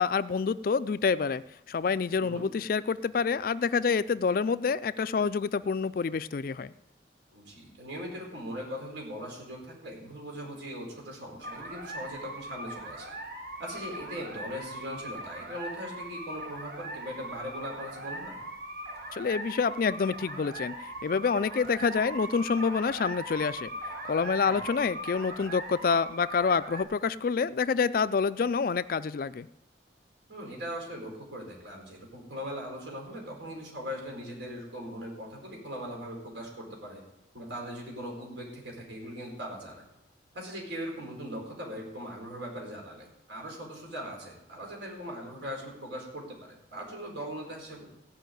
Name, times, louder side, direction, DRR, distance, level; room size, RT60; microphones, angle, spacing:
voice 1, 0.0-1.4 1.7-6.7 19.1-20.8 21.0-23.7 24.0-29.5, left 5 dB, 50° left, 16 dB, 0.3 m, -27 dB
voice 2, 7.3-13.1 13.6-18.4 24.5-24.7 30.3-37.0 37.3-39.8 40.3-47.9, equal, 75° right, -1 dB, 4.7 m, -40 dB
sound 1, 11.4-26.8, right 1 dB, 50° right, 1.6 m, -40 dB
16.0 x 5.6 x 9.1 m, 0.87 s
head